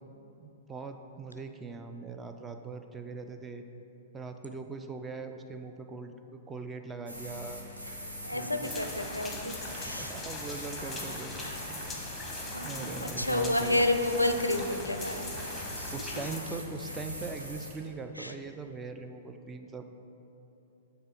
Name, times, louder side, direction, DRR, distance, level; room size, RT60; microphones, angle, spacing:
voice 1, 0.4-3.6 4.1-7.6 8.3-8.7 10.0-11.4 11.7-12.0 12.6-13.9 15.6-19.9, right 4 dB, 15° right, 6 dB, 0.4 m, -41 dB
sound 1, 7.1-17.7, equal, 80° right, 1.2 m, -42 dB
voice 2, 8.2-10.1 11.4-11.5 12.0-12.1 12.5-15.3 15.8-16.1 18.2-18.3, left 2 dB, 90° left, 7 dB, 0.4 m, -30 dB
sound 2, 8.6-16.4, left 2 dB, 10° left, 0.9 m, -41 dB
sound 3, 9.2-17.9, right 3 dB, 35° right, 0.8 m, -55 dB
7.9 x 3.4 x 5.1 m, 3.0 s
figure-of-eight pair, 105°, 0 cm